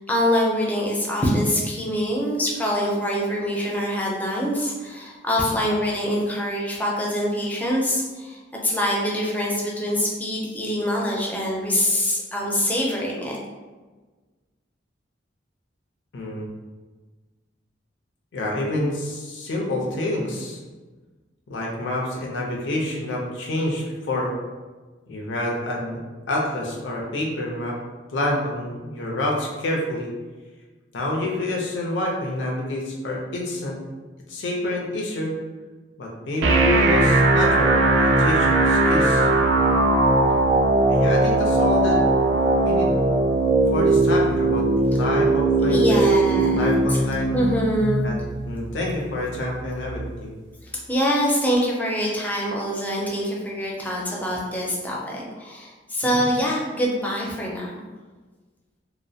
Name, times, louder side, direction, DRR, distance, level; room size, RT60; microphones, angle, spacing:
voice 1, 0.0-13.4 45.7-47.0 47.3-48.0 50.9-57.7, equal, 10° left, -3 dB, 0.4 m, -24 dB
voice 2, 16.1-16.5 18.3-20.6 21.5-24.3 25.1-26.0 26.3-27.8 28.1-30.1 30.9-33.8 34.3-35.3 36.0-39.3 40.9-42.0 42.6-42.9 43.7-46.2 46.5-47.4 48.0-48.2 48.4-50.3 56.0-56.3, left 1 dB, 75° left, -2 dB, 0.5 m, -27 dB
sound 1, 36.4-50.4, right 2 dB, 75° right, 0.4 m, -20 dB
2.5 x 2.0 x 2.6 m, 1.3 s
head